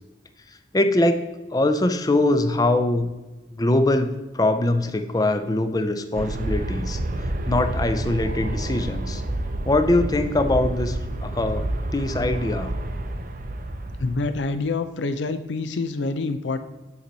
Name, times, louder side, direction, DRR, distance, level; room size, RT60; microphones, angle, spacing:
voice 1, 0.7-1.2 1.5-3.1 3.5-7.0 7.5-9.2 9.7-12.7, left 2 dB, 20° left, 8 dB, 0.5 m, -22 dB
Aircraft, 6.1-14.5, right 1 dB, 50° right, 0.6 m, -29 dB
voice 2, 14.0-16.6, left 3 dB, 85° left, 10 dB, 0.5 m, -26 dB
9.6 x 4.5 x 4.0 m, 1.1 s
head